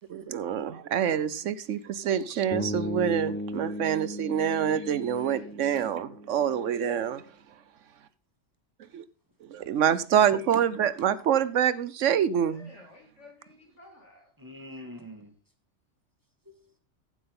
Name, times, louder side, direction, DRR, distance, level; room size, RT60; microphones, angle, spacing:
voice 1, 0.1-7.2 8.9-9.0 9.4-12.7, right 9 dB, 70° right, 1.0 m, -26 dB
sound 1, 2.5-6.7, equal, 15° left, 0.4 m, -36 dB
voice 2, 5.1-5.6 10.8-11.9 12.5-14.3, left 2 dB, 65° left, 3.0 m, -54 dB
voice 3, 14.4-15.3 16.4-16.8, left 1 dB, 15° right, 2.1 m, -46 dB
14.5 x 7.8 x 3.8 m
omnidirectional pair, 1.3 m